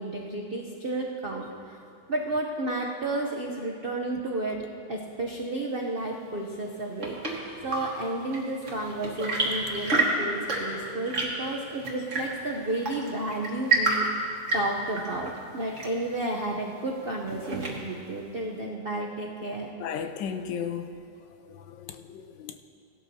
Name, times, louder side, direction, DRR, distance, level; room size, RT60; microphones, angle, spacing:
voice 1, 0.0-1.8 2.1-7.2 7.6-14.3 14.5-19.7, right 2 dB, 85° right, 0.5 m, -32 dB
Chirp tweet / Engine / Tap, 6.6-18.1, right 2 dB, 40° right, 1.7 m, -31 dB
voice 2, 19.8-20.9 21.5-22.6, left 7 dB, 75° left, 1.2 m, -35 dB
17.0 x 12.5 x 2.7 m
omnidirectional pair, 2.1 m